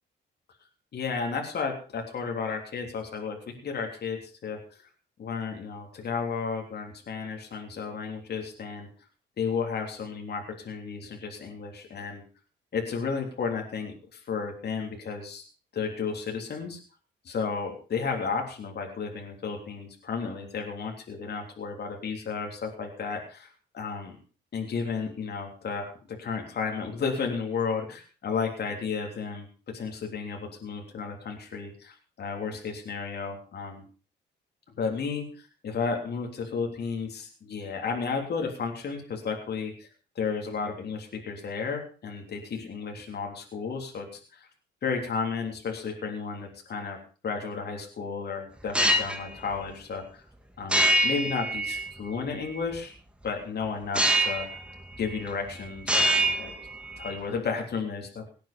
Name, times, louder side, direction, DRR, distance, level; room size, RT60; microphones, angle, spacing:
voice 1, 0.9-4.9 5.2-8.9 9.4-12.2 12.7-15.5 15.7-16.8 17.3-24.2 24.5-33.8 34.8-39.9 40.2-44.5 44.8-47.0 47.2-50.3 50.6-52.9 53.2-54.5 55.0-56.5 57.0-58.3, left 5 dB, 55° left, 2 dB, 3.5 m, -33 dB
sound 1, 48.6-49.2 50.7-52.2 54.0-54.6 55.0-55.5 55.8-57.2, right 1 dB, 5° right, 2.1 m, -25 dB
18.5 x 9.1 x 5.2 m, 0.37 s
cardioid pair, 90°, 20 cm